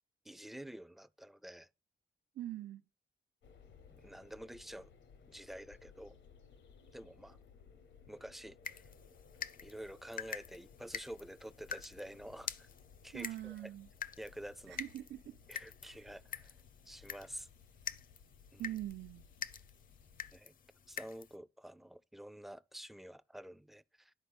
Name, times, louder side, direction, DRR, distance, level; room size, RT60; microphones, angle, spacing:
voice 1, 0.2-1.7 3.9-4.9 5.3-6.2 6.9-7.4 8.1-8.8 9.6-12.7 13.0-13.7 14.2-14.8 15.5-16.5 16.9-17.5 18.5-18.7 20.3-20.5 20.9-24.1, right 1 dB, ahead, 0.3 m, -49 dB
voice 2, 2.4-2.8 13.1-13.9 14.7-15.4 15.8-16.0 18.6-19.3, right 14 dB, 75° right, 0.6 m, -43 dB
sound 1, 3.4-20.4, left 6 dB, 90° left, 1.2 m, -61 dB
sound 2, 8.6-21.4, left 7 dB, 50° left, 0.5 m, -47 dB
10.5 x 4.0 x 5.3 m
cardioid pair, 85°, 19 cm